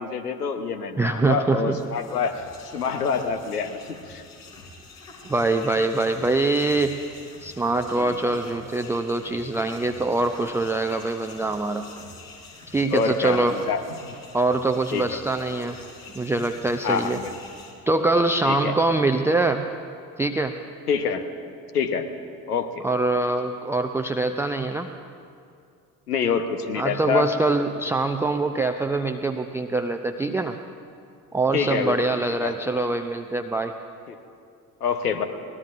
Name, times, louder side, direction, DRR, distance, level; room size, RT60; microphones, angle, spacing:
voice 1, 0.0-2.4 2.7-4.2 7.9-8.2 12.9-14.2 14.9-15.2 16.8-17.3 18.4-18.7 20.9-21.2 21.7-22.1 22.5-22.8 26.1-27.3 31.5-32.0 32.4-32.5 34.1-34.2 34.8-35.2, left 6 dB, 80° left, 9 dB, 1.0 m, -26 dB
voice 2, 1.0-1.8 5.2-7.0 7.4-11.9 12.7-13.6 14.3-15.8 16.1-17.2 17.9-19.7 20.2-20.6 22.8-24.9 26.8-30.6 31.3-33.8, right 2 dB, 5° right, 5 dB, 0.4 m, -24 dB
sound 1, 1.6-17.7, left 3 dB, 60° left, 4.2 m, -45 dB
23.0 x 20.0 x 2.5 m, 2.4 s
figure-of-eight pair, 55°, 45 cm